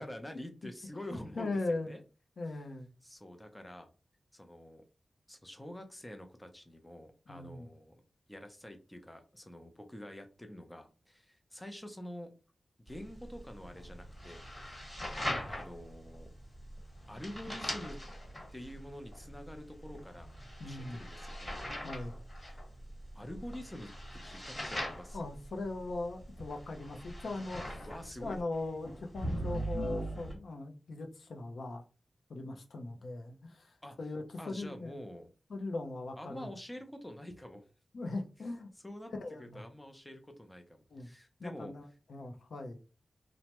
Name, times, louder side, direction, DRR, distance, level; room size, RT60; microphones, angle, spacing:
voice 1, 0.0-2.0 3.0-3.9 4.3-4.8 5.3-8.0 8.3-12.3 12.9-14.4 14.7-15.0 15.5-16.3 17.1-18.0 18.5-20.3 20.6-21.5 22.5-22.6 23.1-23.9 24.2-25.2 27.8-28.4 33.8-34.0 34.4-35.3 36.2-37.7 38.8-39.1 39.4-41.7, left 1 dB, 10° left, 0.5 m, -47 dB
voice 2, 1.1-1.9 2.4-2.9 7.3-7.7 15.2-15.5 20.6-21.0 21.8-22.2 25.1-27.9 28.2-31.8 32.3-35.0 35.5-36.5 37.9-38.7 39.2-39.6 40.9-41.1 41.4-42.8, left 2 dB, 80° left, 0.5 m, -40 dB
sound 1, 12.9-30.3, equal, 30° left, 1.3 m, -41 dB
3.2 x 2.0 x 2.9 m
wide cardioid pair, 110°, 0 cm